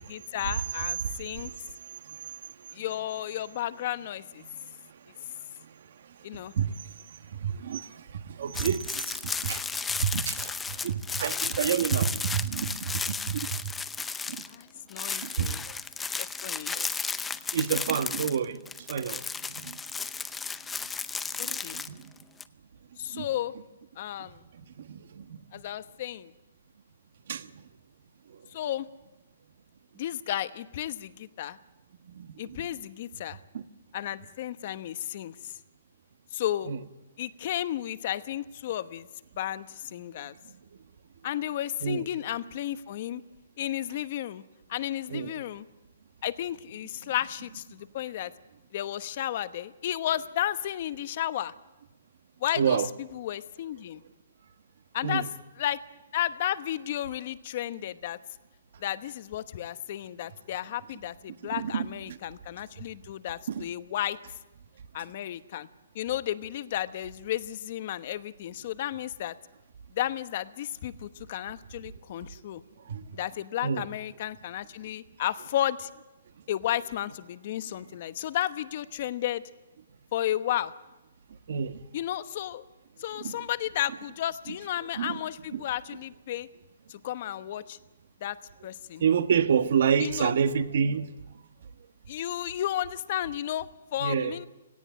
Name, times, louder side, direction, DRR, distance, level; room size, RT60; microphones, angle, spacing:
voice 1, 0.0-1.5 2.7-4.4 6.2-6.5 14.5-15.6 16.2-16.7 21.4-21.8 23.0-23.5 24.0-24.4 25.5-26.3 28.5-28.9 30.0-31.6 32.4-33.4 33.9-35.5 36.3-36.7 37.2-39.1 39.4-40.3 41.2-43.2 43.6-44.4 44.7-45.7 46.2-48.3 48.7-51.5 52.4-54.0 54.9-55.3 55.6-55.8 56.1-58.2 58.8-64.2 64.9-65.7 65.9-69.3 69.9-72.6 73.1-75.9 76.5-79.4 80.1-80.7 81.9-82.7 83.0-86.5 86.9-87.8 88.2-88.4 88.6-89.0 90.0-90.3 92.1-94.5, left 12 dB, 45° left, 1.0 m, -33 dB
voice 2, 7.4-7.9 8.1-9.6 10.0-10.5 10.8-12.8 13.3-13.5 14.3-14.4 15.2-15.5 16.7-16.9 17.5-18.6 18.9-19.2 19.6-19.8 21.4-22.0 23.1-23.3 24.9-25.4 27.3-27.5 32.1-32.3 33.5-33.6 36.7-36.8 41.8-42.0 45.1-45.3 52.6-52.9 55.0-55.2 61.5-62.2 63.5-63.6 72.9-73.0 73.6-73.9 81.5-81.8 83.2-83.3 85.0-85.2 85.5-85.6 89.0-91.1 94.0-94.3, right 7 dB, 60° right, 1.3 m, -28 dB
sound 1, 8.5-14.6 14.9-22.4, left 5 dB, 10° left, 0.6 m, -34 dB
18.0 x 16.0 x 9.4 m
hypercardioid pair, 155°, 0 cm